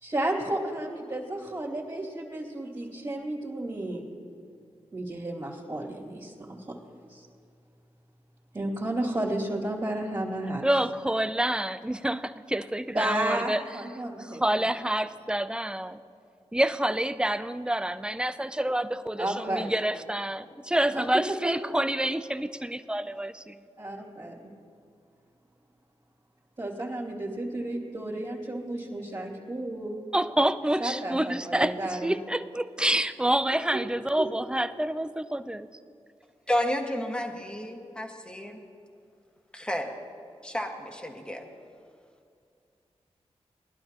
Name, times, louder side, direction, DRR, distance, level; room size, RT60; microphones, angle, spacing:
voice 1, 0.0-4.1 4.9-6.7 7.1-7.3 8.5-10.6 12.9-14.7 19.2-19.7 20.9-21.5 23.8-24.5 26.6-29.9 30.8-32.1 34.2-34.3, right 1 dB, 40° right, -7 dB, 2.6 m, -32 dB
voice 2, 10.6-13.6 14.2-16.0 16.5-23.5 30.1-35.7, right 1 dB, 10° right, 12 dB, 0.5 m, -28 dB
voice 3, 36.5-38.6 39.5-39.9 40.4-41.4, left 1 dB, 10° left, 2 dB, 1.6 m, -31 dB
20.0 x 11.5 x 3.0 m, 2.4 s
cardioid pair, 75°, 11 cm